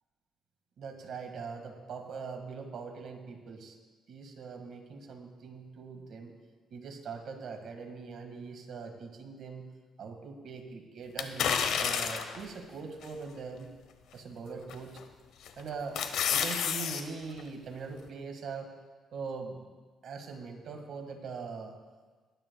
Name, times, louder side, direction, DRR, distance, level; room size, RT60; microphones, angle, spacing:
voice 1, 0.8-3.7 4.1-6.3 6.7-9.7 10.0-13.7 14.1-15.0 15.6-16.0 16.3-18.7 19.1-19.7 20.0-21.7, right 5 dB, 65° right, 4 dB, 1.7 m, -42 dB
sound 1, 11.2-12.4 13.0-13.1 14.7-15.0 15.5-17.0 17.4-17.5, left 7 dB, 85° left, 0.8 m, -30 dB
20.0 x 9.5 x 2.3 m, 1.4 s
cardioid pair, 90°, 0 cm